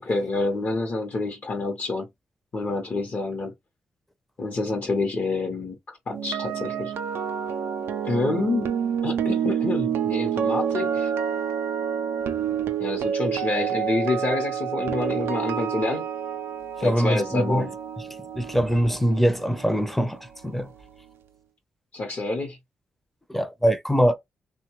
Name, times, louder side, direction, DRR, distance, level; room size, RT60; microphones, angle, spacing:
voice 1, 0.1-2.1 2.5-3.5 4.4-6.9 8.0-11.1 12.8-16.0 16.8-17.7 21.9-22.6, left 3 dB, 55° left, 0.8 m, -28 dB
sound 1, 6.1-20.2 20.4-20.7, right 8 dB, 80° right, 0.4 m, -28 dB
voice 2, 16.8-17.7 18.3-20.7 23.3-24.2, equal, 5° left, 0.5 m, -23 dB
2.8 x 2.2 x 3.0 m
supercardioid pair, 50°, 4 cm